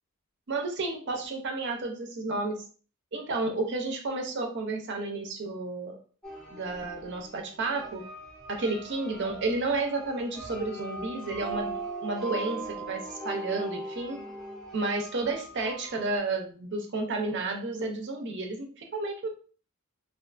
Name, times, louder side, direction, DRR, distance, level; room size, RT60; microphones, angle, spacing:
voice 1, 0.5-2.6 3.1-6.0 6.5-8.1 8.5-14.2 14.7-19.3, right 3 dB, 50° right, 3 dB, 0.5 m, -31 dB
sound 1, 6.2-16.2, right 2 dB, 5° left, 0.6 m, -40 dB
2.4 x 2.3 x 2.4 m, 0.41 s
head